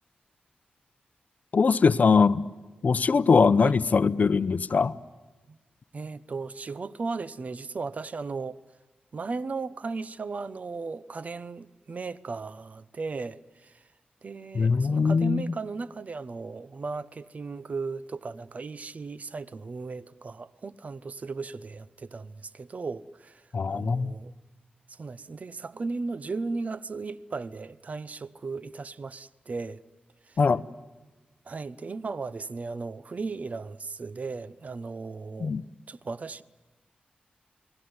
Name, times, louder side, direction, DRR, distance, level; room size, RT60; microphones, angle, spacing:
voice 1, 1.5-2.5 2.8-5.0 14.5-15.4 23.5-24.1 30.4-30.6 35.4-35.6, left 5 dB, 55° left, 0.8 m, -22 dB
voice 2, 5.9-8.6 9.1-13.8 14.2-24.3 24.9-29.8 30.2-30.4 31.5-35.5 35.9-36.4, right 4 dB, 50° right, 0.9 m, -36 dB
30.0 x 20.0 x 9.7 m
wide cardioid pair, 100°, 3 cm